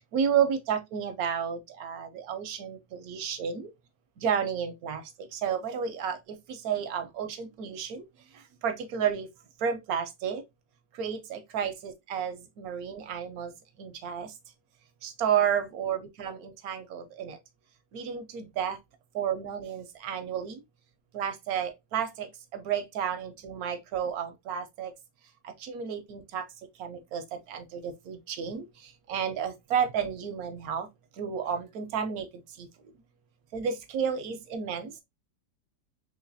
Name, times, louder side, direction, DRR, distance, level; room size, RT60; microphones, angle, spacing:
voice 1, 0.1-3.7 4.2-5.0 5.3-6.2 6.6-8.0 8.6-9.3 9.6-10.4 11.0-13.5 13.8-14.3 15.0-17.4 17.9-18.8 19.1-20.6 21.1-22.3 22.5-24.9 25.6-26.4 26.8-27.2 27.5-28.6 29.1-30.9 31.2-32.3 33.5-35.0, right 8 dB, 70° right, 0.9 m, -31 dB
3.8 x 3.1 x 2.5 m
omnidirectional pair, 1.9 m